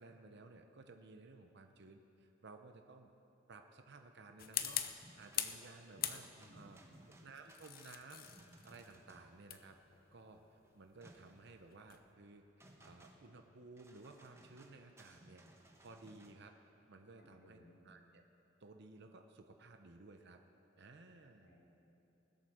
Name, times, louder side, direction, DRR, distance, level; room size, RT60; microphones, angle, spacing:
voice 1, 0.0-3.1 3.5-4.8 5.2-6.8 7.1-8.3 8.6-9.8 10.1-15.4 15.8-17.6 17.8-18.2 18.6-20.4 20.8-21.5, right 3 dB, 60° right, 5 dB, 0.8 m, -57 dB
sound 1, 4.4-5.7 6.0-6.6 7.4-12.1, left 11 dB, 50° left, 0.6 m, -43 dB
sound 2, 4.8-16.3, right 1 dB, 15° right, 1.2 m, -63 dB
voice 2, 6.4-7.1 17.2-17.8 21.4-21.6, equal, 85° left, -2 dB, 3.6 m, -63 dB
20.0 x 8.0 x 6.5 m, 2.8 s
head